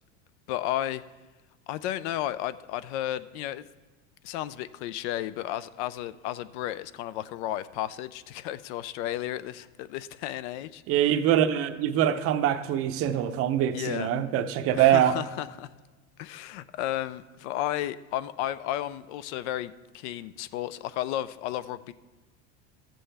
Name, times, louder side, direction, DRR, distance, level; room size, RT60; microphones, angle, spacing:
voice 1, 0.5-1.0 1.7-3.6 4.2-10.8 13.7-14.1 14.7-15.7 16.2-21.9, left 13 dB, 70° left, 0.5 m, -33 dB
voice 2, 10.9-15.1, right 11 dB, 40° right, 0.6 m, -24 dB
14.0 x 7.7 x 3.3 m
supercardioid pair, 135°, 35 cm